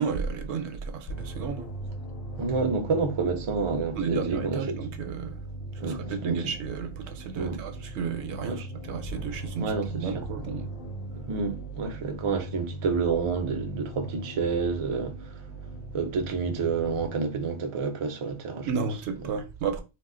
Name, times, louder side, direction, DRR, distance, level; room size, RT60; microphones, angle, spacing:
voice 1, 0.0-1.7 3.9-5.4 5.7-10.7 18.7-19.8, right 5 dB, 75° right, 0.9 m, -32 dB
sound 1, 1.1-17.1, right 2 dB, 60° left, 0.7 m, -39 dB
voice 2, 2.4-4.6 5.8-6.4 7.4-7.6 8.4-8.7 9.6-10.0 11.3-15.3 15.9-18.9, right 4 dB, 45° right, 0.4 m, -29 dB
2.4 x 2.2 x 3.6 m
omnidirectional pair, 1.2 m